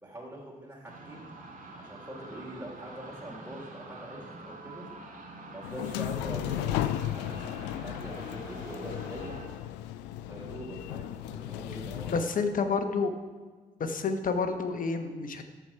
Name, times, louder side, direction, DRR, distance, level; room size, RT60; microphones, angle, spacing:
voice 1, 0.0-1.3 1.8-4.9 5.5-9.3 10.3-12.8, right 1 dB, 10° right, -5 dB, 3.3 m, -43 dB
sound 1, 0.8-9.5, right 2 dB, 50° right, 2.1 m, -46 dB
sound 2, 5.6-12.2, left 12 dB, 80° left, 0.4 m, -35 dB
voice 2, 12.1-13.1 13.8-15.4, left 4 dB, 50° left, 8 dB, 1.2 m, -29 dB
13.5 x 4.8 x 5.8 m, 1.4 s
hypercardioid pair, 50°, 18 cm